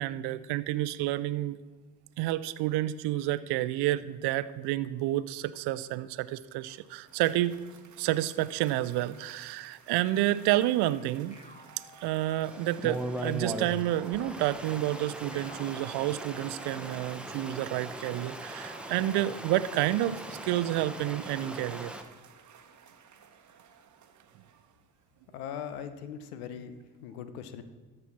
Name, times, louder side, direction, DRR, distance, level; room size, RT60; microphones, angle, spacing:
voice 1, 0.0-1.6 2.2-7.6 8.0-11.4 12.0-21.9, right 14 dB, 60° right, 16 dB, 0.6 m, -29 dB
Cheering / Applause, 6.4-25.0, right 7 dB, 40° right, 1.0 m, -55 dB
sound 1, 11.3-12.9 15.3-16.9 18.5-20.0, left 1 dB, 15° left, 1.3 m, -56 dB
Stream, 12.4-22.0, right 1 dB, ahead, 1.0 m, -39 dB
voice 2, 25.3-26.7 27.0-27.6, left 8 dB, 80° left, 11 dB, 0.8 m, -40 dB
13.0 x 4.4 x 5.8 m, 1.3 s
hypercardioid pair, 50°, 44 cm